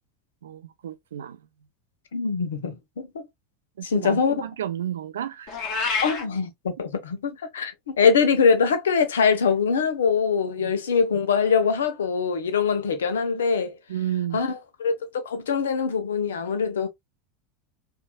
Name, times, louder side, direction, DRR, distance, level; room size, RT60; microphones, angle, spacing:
voice 1, 0.4-1.4 3.8-5.6 10.6-10.7 13.9-14.4, right 11 dB, 75° right, 0.4 m, -32 dB
voice 2, 2.1-3.1 3.8-4.3 6.0-13.8 14.3-15.0 15.2-16.9, left 5 dB, 75° left, 0.8 m, -23 dB
Meow, 5.5-6.2, left 4 dB, 50° left, 1.4 m, -27 dB
4.5 x 2.7 x 2.2 m
figure-of-eight pair, 80°, 0 cm